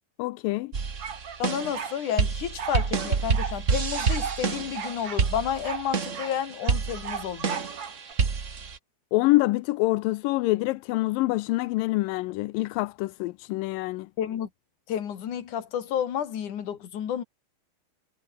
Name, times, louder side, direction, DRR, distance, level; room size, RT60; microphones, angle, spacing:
voice 1, 0.2-0.7 9.1-14.1, left 20 dB, 80° left, 2.2 m, -26 dB
sound 1, 0.7-8.8, right 5 dB, 60° right, 0.7 m, -28 dB
sound 2, 1.0-2.0 2.6-3.6 3.9-4.4 4.8-6.4 6.6-8.1, right 7 dB, 45° right, 2.7 m, -36 dB
voice 2, 1.4-7.6 14.2-14.5 14.9-17.2, left 9 dB, 60° left, 3.5 m, -31 dB
omnidirectional pair, 4.3 m